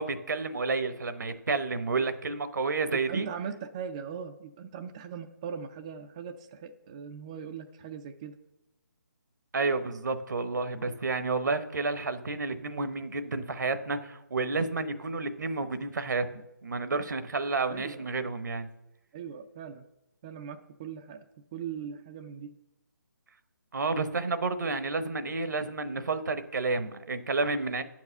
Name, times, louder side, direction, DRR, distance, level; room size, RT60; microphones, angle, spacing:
voice 1, 0.0-3.3 9.5-18.7 23.7-27.8, right 3 dB, 65° right, 11 dB, 0.9 m, -30 dB
voice 2, 2.9-8.4 16.9-17.0 17.7-18.1 19.1-19.9 20.2-21.3 21.5-22.6, right 7 dB, 20° right, 7 dB, 0.3 m, -40 dB
9.4 x 4.8 x 6.6 m, 0.94 s
figure-of-eight pair, 155°, 10 cm